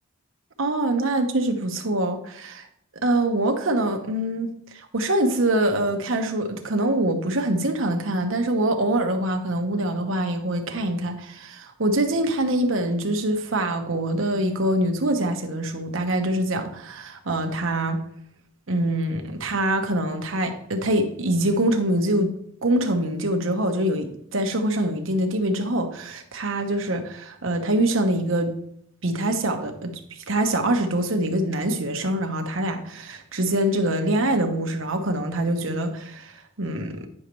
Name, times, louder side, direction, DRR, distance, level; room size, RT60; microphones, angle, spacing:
voice 1, 0.6-2.6 3.0-4.5 4.7-18.0 18.7-22.3 22.6-28.5 29.0-30.0 30.3-37.1, right 1 dB, 75° right, 5 dB, 1.2 m, -24 dB
9.8 x 6.4 x 3.1 m, 0.71 s
head